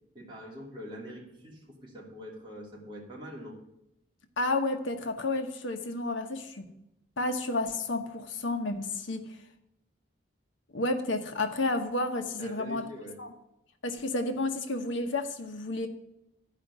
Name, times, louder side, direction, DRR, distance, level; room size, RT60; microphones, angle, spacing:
voice 1, 0.1-3.6 12.4-13.2, equal, 25° right, 2.8 m, -44 dB
voice 2, 4.4-6.6 7.2-9.3 10.7-12.9 13.2-13.3 13.8-15.9, left 2 dB, 85° left, 1.1 m, -31 dB
12.5 x 5.0 x 8.0 m
head